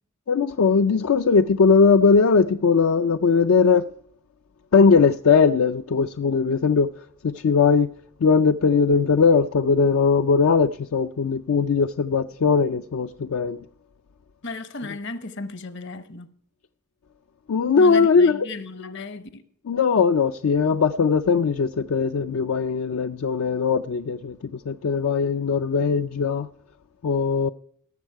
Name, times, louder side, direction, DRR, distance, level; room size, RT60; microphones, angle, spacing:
voice 1, 0.3-3.9 4.7-6.9 7.2-7.9 8.2-13.6 17.5-18.5 19.7-26.5 27.0-27.5, left 5 dB, 75° left, 0.4 m, -19 dB
voice 2, 14.4-16.3 17.7-19.4, left 3 dB, 55° left, 0.9 m, -35 dB
18.0 x 7.2 x 4.6 m
head